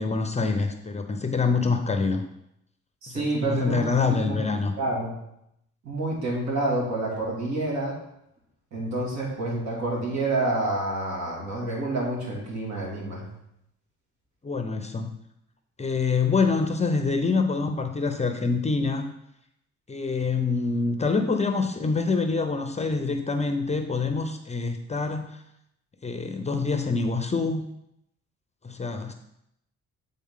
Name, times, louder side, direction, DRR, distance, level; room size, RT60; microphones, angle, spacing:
voice 1, 0.0-2.2 3.1-4.7 14.4-15.1 15.8-19.1 19.9-25.4 26.0-27.7 28.6-29.1, left 4 dB, 20° left, 6 dB, 0.6 m, -26 dB
voice 2, 3.0-4.4 4.8-5.1 5.8-8.0 8.7-13.2, right 2 dB, 65° right, -2 dB, 2.4 m, -28 dB
8.5 x 3.9 x 3.7 m, 0.79 s
cardioid pair, 90°, 30 cm